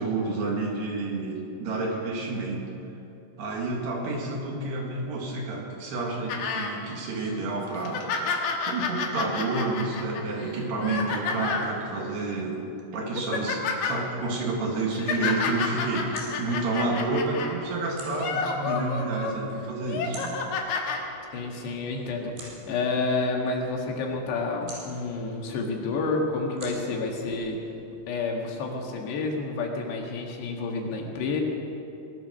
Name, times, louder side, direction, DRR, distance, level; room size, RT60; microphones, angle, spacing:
voice 1, 0.0-2.7 3.4-8.1 8.7-12.6 12.9-20.4, right 2 dB, 75° right, -1 dB, 4.0 m, -29 dB
sound 1, 6.3-6.7 7.2-7.3 7.7-11.7 12.5-12.6 13.0-14.0 14.7-17.5 18.1-19.3 19.8-21.0 21.9-22.0, left 5 dB, 65° left, 2.8 m, -30 dB
sound 2, 15.5-28.2, right 2 dB, 90° right, 6.7 m, -50 dB
voice 2, 21.3-27.6 28.1-31.4, left 3 dB, 80° left, 1 dB, 3.8 m, -29 dB
19.5 x 11.5 x 6.4 m, 2.8 s
omnidirectional pair, 4.8 m